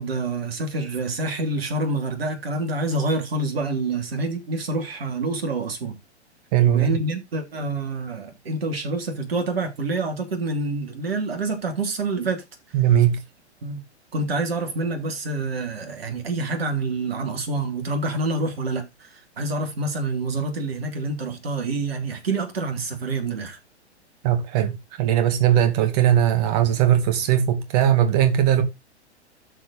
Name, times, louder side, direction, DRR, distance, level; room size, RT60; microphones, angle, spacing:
voice 1, 0.0-6.0 6.6-12.4 13.6-13.8 14.1-23.6, right 2 dB, 60° right, 3.3 m, -27 dB
voice 2, 6.5-6.9 12.7-13.2 24.2-28.6, right 10 dB, 35° right, 2.2 m, -19 dB
12.5 x 4.8 x 4.0 m
figure-of-eight pair, 110°, 34 cm